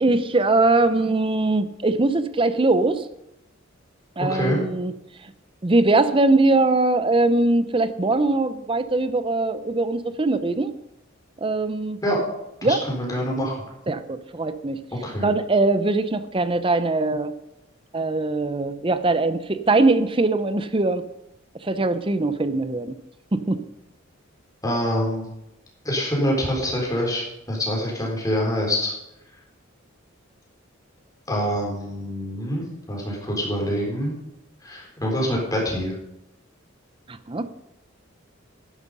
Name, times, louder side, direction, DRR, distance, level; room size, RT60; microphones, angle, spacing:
voice 1, 0.0-3.1 4.2-4.9 5.2-5.3 5.6-10.7 11.4-12.0 12.6-12.8 13.9-14.8 15.2-17.3 17.9-21.0 21.5-23.0 23.3-23.6 37.1-37.5, right 2 dB, 25° right, 12 dB, 0.6 m, -21 dB
voice 2, 4.3-4.6 12.0-12.2 12.6-13.6 15.0-15.3 24.6-25.3 25.8-28.9 31.3-34.1 34.6-36.0, equal, 20° left, -2 dB, 4.2 m, -25 dB
11.0 x 11.0 x 5.4 m, 0.87 s
head